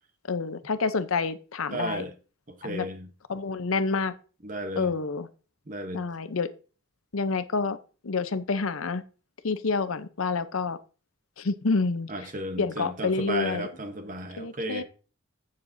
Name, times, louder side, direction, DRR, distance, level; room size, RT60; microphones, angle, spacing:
voice 1, 0.3-2.1 2.6-2.9 3.3-4.1 4.8-5.3 5.9-6.5 7.1-7.8 8.0-9.0 9.4-10.8 11.4-12.1 12.6-13.7 14.4-14.8, left 4 dB, 85° left, 0.7 m, -28 dB
voice 2, 1.7-2.1 2.5-3.1 4.4-4.9 5.7-6.0 12.1-14.8, right 1 dB, 40° right, 1.0 m, -34 dB
14.5 x 6.5 x 2.7 m
head